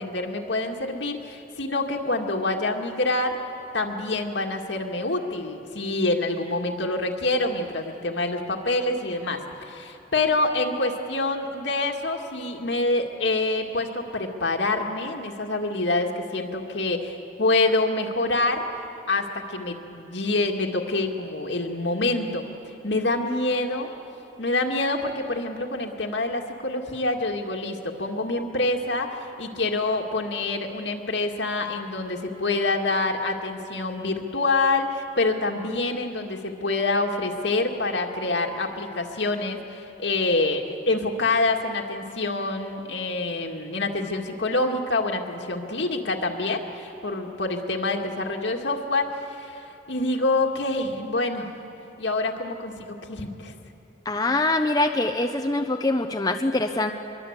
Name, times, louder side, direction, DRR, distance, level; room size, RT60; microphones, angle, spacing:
voice 1, 0.0-3.4 3.7-18.7 19.1-22.5 22.8-23.9 24.4-51.5 52.0-53.5, left 2 dB, 75° left, 2 dB, 2.2 m, -26 dB
voice 2, 54.0-56.9, left 2 dB, 20° left, 4 dB, 0.8 m, -24 dB
24.0 x 23.0 x 8.2 m, 2.9 s
head